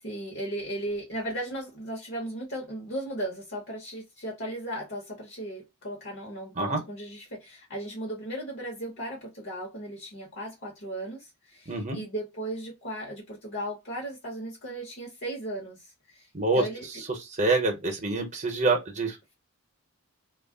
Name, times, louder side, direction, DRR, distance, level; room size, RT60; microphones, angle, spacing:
voice 1, 0.0-16.3 16.5-16.9, right 1 dB, 50° left, 1.0 m, -36 dB
voice 2, 11.7-12.0 16.3-16.6 17.1-19.2, right 3 dB, 30° right, 0.8 m, -26 dB
2.3 x 2.0 x 3.5 m
head